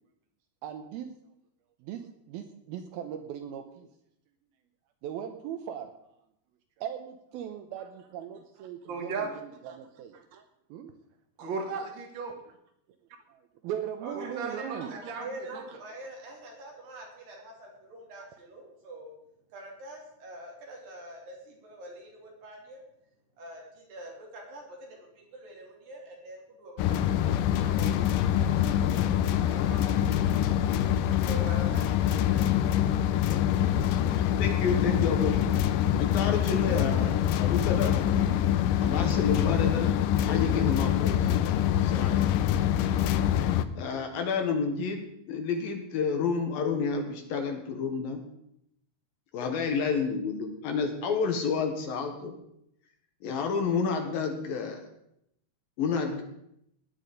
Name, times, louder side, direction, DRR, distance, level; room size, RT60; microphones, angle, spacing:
voice 1, 0.6-1.1 1.8-2.0 2.3-3.9 5.0-5.9 6.8-10.5 10.7-10.9 13.3-15.8, right 9 dB, 75° right, 7 dB, 2.5 m, -39 dB
voice 2, 8.9-9.3 11.4-12.4 14.2-15.2, right 4 dB, 40° right, 2 dB, 1.9 m, -35 dB
voice 3, 14.0-19.2 19.5-22.8 23.4-32.8, right 1 dB, 55° right, -1 dB, 4.9 m, -45 dB
sound 1, 26.8-43.7, left 10 dB, 85° left, 1.9 m, -25 dB
voice 4, 34.2-35.3 36.0-37.9 38.8-39.9 40.2-41.3 41.7-42.3 43.7-48.2 49.3-52.3 53.2-54.8 55.8-56.2, left 5 dB, 65° left, 5 dB, 2.9 m, -30 dB
17.0 x 10.5 x 5.2 m, 0.78 s
omnidirectional pair, 4.8 m